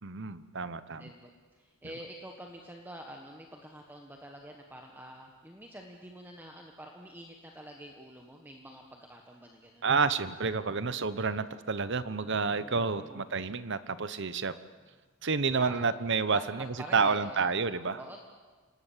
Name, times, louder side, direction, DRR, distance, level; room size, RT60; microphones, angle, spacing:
voice 1, 0.0-1.1 9.8-14.5 15.2-18.0, right 4 dB, 55° right, 14 dB, 1.0 m, -29 dB
voice 2, 1.0-9.9 12.6-13.2 15.5-15.9 16.3-17.4 17.9-18.2, right 1 dB, 10° right, 1 dB, 1.5 m, -47 dB
27.5 x 19.5 x 7.5 m, 1.4 s
head